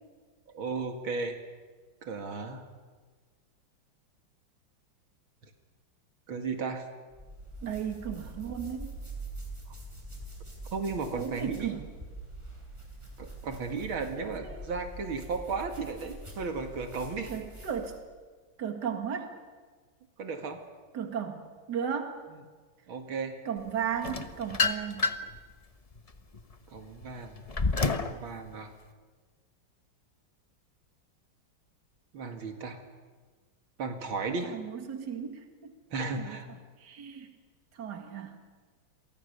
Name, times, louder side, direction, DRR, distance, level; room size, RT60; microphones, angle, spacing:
voice 1, 0.5-1.4 2.0-2.7 6.3-6.8 10.7-11.8 13.2-17.3 20.2-20.6 22.9-23.4 26.7-27.4 28.1-28.7 32.1-32.8 33.8-34.6 35.9-36.5, right 4 dB, 75° right, 5 dB, 2.7 m, -35 dB
sound 1, 7.1-18.1, right 2 dB, 15° right, 6.1 m, -44 dB
voice 2, 7.6-8.9 11.2-11.9 14.2-14.7 17.3-18.0 18.6-19.3 20.9-22.2 23.4-25.1 34.4-35.7 36.2-37.3 37.7-38.4, right 7 dB, 55° right, 5 dB, 2.5 m, -35 dB
sound 2, 24.0-25.4 25.9-28.2, left 4 dB, 30° left, 0.7 m, -29 dB
29.5 x 23.5 x 6.8 m, 1.4 s
omnidirectional pair, 2.2 m